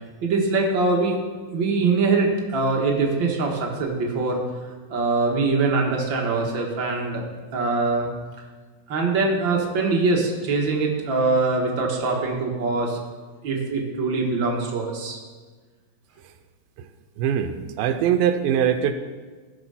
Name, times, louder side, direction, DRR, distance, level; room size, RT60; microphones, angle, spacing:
voice 1, 0.2-1.2 1.5-4.4 4.9-7.2 7.5-8.1 8.9-13.0 13.4-15.2, right 3 dB, 50° right, 0 dB, 1.5 m, -23 dB
voice 2, 17.2-18.9, right 9 dB, 85° right, 8 dB, 2.5 m, -22 dB
15.0 x 6.4 x 5.7 m, 1.4 s
omnidirectional pair, 4.2 m